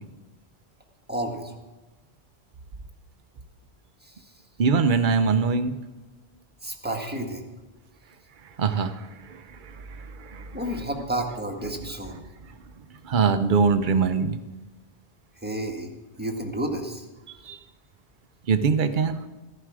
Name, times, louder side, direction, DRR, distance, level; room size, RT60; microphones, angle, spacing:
voice 1, 1.1-1.5 4.0-4.1 6.6-7.5 10.5-12.2 15.4-15.9 16.2-17.1, right 1 dB, 10° right, 1 dB, 1.5 m, -31 dB
voice 2, 4.6-5.8 8.6-10.6 11.8-11.9 12.4-14.4 17.4-17.6 18.5-19.2, right 5 dB, 50° right, 9 dB, 0.9 m, -24 dB
15.0 x 11.0 x 4.8 m, 1.2 s
omnidirectional pair, 1.1 m